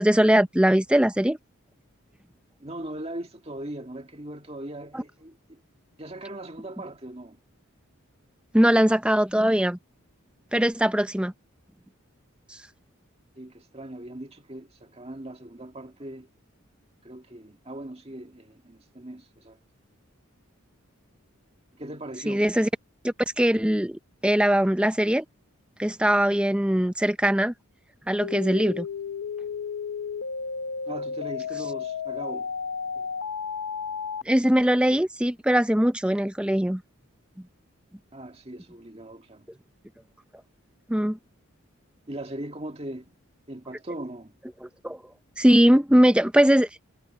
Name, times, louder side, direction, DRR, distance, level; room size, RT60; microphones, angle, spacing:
voice 1, 0.0-1.4 4.9-5.0 8.5-9.8 10.5-11.3 12.5-12.6 22.3-22.7 23.0-25.3 25.8-27.5 28.1-28.9 34.3-36.8 40.9-41.2 44.6-45.0 45.4-46.7, equal, 5° right, 0.6 m, -21 dB
voice 2, 2.6-5.6 6.0-7.4 13.4-16.3 17.0-19.6 21.7-22.5 30.9-32.5 38.1-39.5 42.1-43.2 43.5-44.3, right 1 dB, 25° right, 1.9 m, -39 dB
sound 1, 28.2-34.2, left 6 dB, 75° left, 0.7 m, -33 dB
head